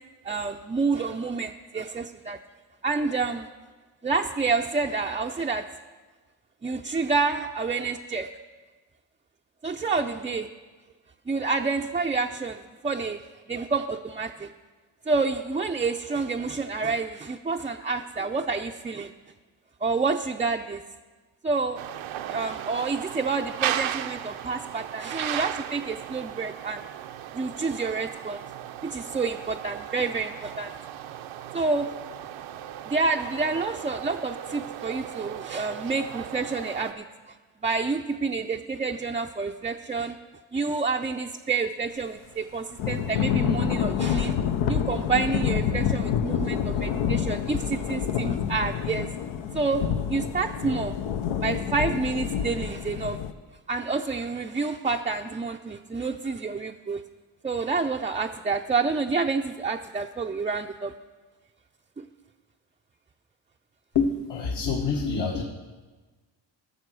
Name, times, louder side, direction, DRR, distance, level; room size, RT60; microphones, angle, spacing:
voice 1, 0.2-2.4 2.8-3.5 4.0-5.6 6.6-8.3 9.6-10.5 11.3-13.2 13.5-14.5 15.1-19.1 19.8-20.8 21.4-21.8 22.3-26.8 27.3-28.4 28.8-30.7 31.5-31.9 32.9-37.0 37.6-40.2 40.5-44.3 44.7-49.1 49.5-50.9 51.4-53.2 53.7-57.0 57.4-60.9 62.0-62.1, right 4 dB, 15° right, 2 dB, 0.4 m, -28 dB
sound 1, 21.8-36.9, right 11 dB, 80° right, 0.7 m, -36 dB
Thunder / Rain, 42.8-53.3, left 8 dB, 75° left, 0.8 m, -27 dB
voice 2, 63.9-65.4, left 5 dB, 60° left, 2 dB, 1.3 m, -26 dB
14.0 x 6.6 x 6.1 m, 1.3 s
cardioid pair, 75°, 47 cm